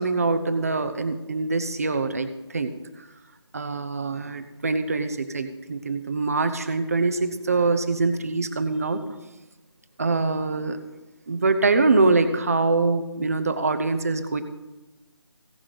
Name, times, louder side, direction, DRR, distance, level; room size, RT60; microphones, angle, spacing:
voice 1, 0.0-2.7 3.5-9.0 10.0-10.8 11.3-14.4, right 3 dB, 30° right, 9 dB, 0.6 m, -24 dB
16.5 x 5.7 x 5.0 m, 1.1 s
figure-of-eight pair, 170°, 15 cm